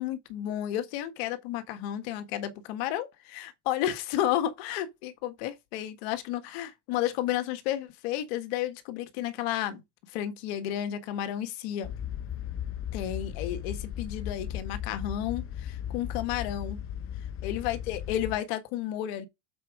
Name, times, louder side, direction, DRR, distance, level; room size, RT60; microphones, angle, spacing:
voice 1, 0.0-9.8 10.1-11.9 12.9-16.8 17.4-19.3, left 12 dB, 70° left, 1.6 m, -32 dB
sound 1, 11.8-18.4, left 10 dB, 40° left, 1.0 m, -36 dB
7.3 x 4.6 x 4.9 m
supercardioid pair, 110°, 32 cm